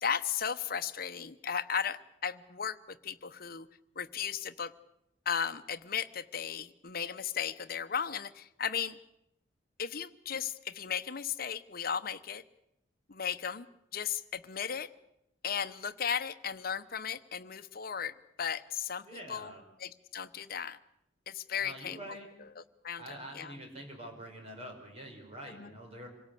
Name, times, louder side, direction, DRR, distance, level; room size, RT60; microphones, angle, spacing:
voice 1, 0.0-3.7 4.0-4.7 5.3-9.0 9.8-12.4 13.1-13.7 13.9-14.9 15.4-19.5 19.8-20.8 21.3-22.0 22.8-23.5 25.5-25.7, left 7 dB, 55° left, 11 dB, 1.0 m, -35 dB
voice 2, 19.0-19.6 21.6-22.3 23.0-26.1, right 1 dB, 35° right, 2 dB, 5.3 m, -46 dB
26.5 x 17.5 x 8.4 m, 0.81 s
head